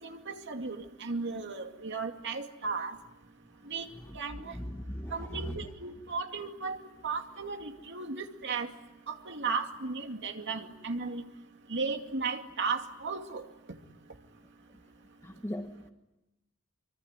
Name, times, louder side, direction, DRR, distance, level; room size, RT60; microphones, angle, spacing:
voice 1, 0.0-3.0 3.7-3.9 4.1-4.5 5.1-6.8 7.0-8.7 9.1-11.2 11.7-13.4, right 4 dB, 60° right, 5 dB, 2.5 m, -35 dB
voice 2, 4.3-5.6 15.2-15.9, equal, 15° left, 5 dB, 1.3 m, -39 dB
24.5 x 24.5 x 9.8 m, 0.96 s
head